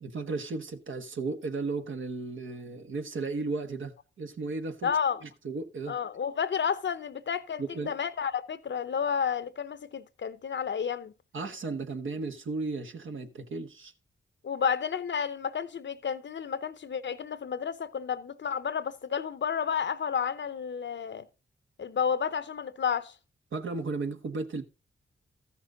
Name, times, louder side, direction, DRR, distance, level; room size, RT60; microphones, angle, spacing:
voice 1, 0.0-4.9 5.2-5.9 7.6-7.9 11.3-13.9 23.5-24.6, right 3 dB, 70° right, 1.2 m, -35 dB
voice 2, 4.8-5.2 5.9-11.1 14.4-21.3 21.8-23.1, left 7 dB, 60° left, 0.8 m, -31 dB
14.0 x 6.0 x 3.9 m
cardioid pair, 50°, 21 cm